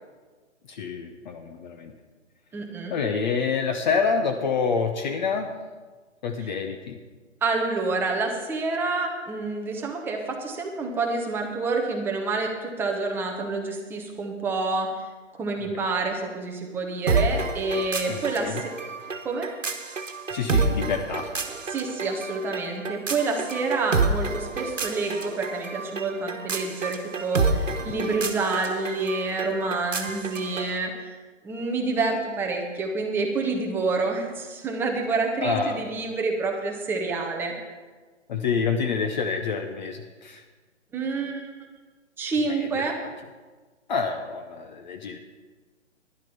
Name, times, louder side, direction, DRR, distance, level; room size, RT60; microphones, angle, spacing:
voice 1, 0.7-1.9 2.9-5.5 6.2-7.0 15.7-15.8 18.1-18.6 20.3-21.3 27.8-28.0 35.4-35.8 38.3-40.4 42.5-42.9 43.9-45.2, left 5 dB, 40° left, 6 dB, 0.8 m, -27 dB
voice 2, 2.5-2.9 7.4-14.9 15.4-18.7 19.2-19.5 21.7-31.2 31.4-37.6 40.9-41.5 42.2-43.0, right 3 dB, 5° right, 1 dB, 0.7 m, -28 dB
sound 1, 17.1-30.8, right 3 dB, 85° right, 1.2 m, -29 dB
10.5 x 10.5 x 5.4 m, 1.4 s
figure-of-eight pair, 135°, 37 cm